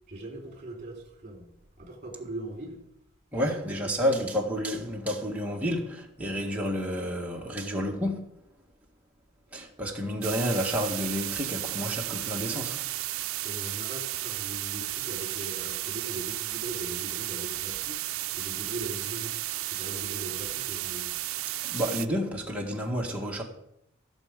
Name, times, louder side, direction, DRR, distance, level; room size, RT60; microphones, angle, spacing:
voice 1, 0.1-1.5 1.8-2.8 3.3-3.8 13.4-18.0 18.3-19.3 19.7-21.2, right 1 dB, 35° right, 3.8 m, -40 dB
voice 2, 3.3-8.2 9.5-12.8 21.6-23.4, equal, 5° right, 1.7 m, -30 dB
sound 1, 10.2-22.1, right 16 dB, 80° right, 0.5 m, -33 dB
15.5 x 7.1 x 5.3 m
head